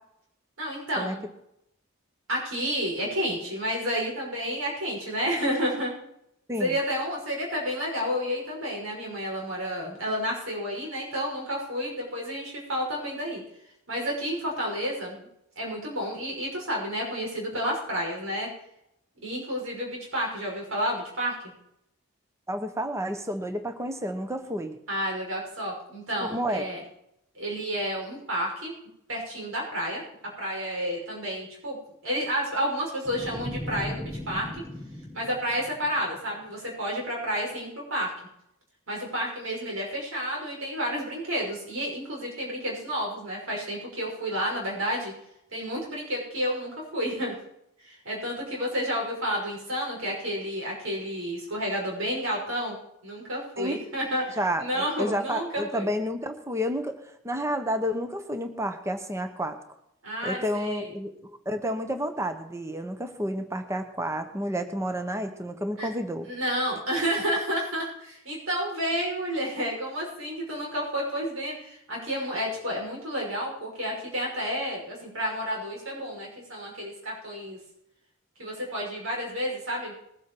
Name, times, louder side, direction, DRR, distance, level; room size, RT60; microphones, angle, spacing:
voice 1, 0.6-1.2 2.3-5.9 6.6-13.4 13.9-15.2 15.6-18.5 19.2-21.3 24.9-26.8 27.3-28.7 29.1-30.0 30.4-31.8 32.0-34.6 35.1-38.1 38.9-45.1 45.5-47.3 47.8-52.8 53.0-55.9 60.0-60.9 65.8-65.9 66.2-77.6 78.4-79.9, equal, 75° right, -2 dB, 5.7 m, -30 dB
voice 2, 22.5-24.8 26.3-26.6 53.6-53.8 54.4-57.0 57.2-59.6 60.2-61.1 61.4-66.3, equal, 15° right, 7 dB, 1.0 m, -30 dB
sound 1, 33.0-36.3, left 1 dB, 10° left, 2.5 m, -38 dB
20.5 x 8.0 x 4.7 m, 0.78 s
head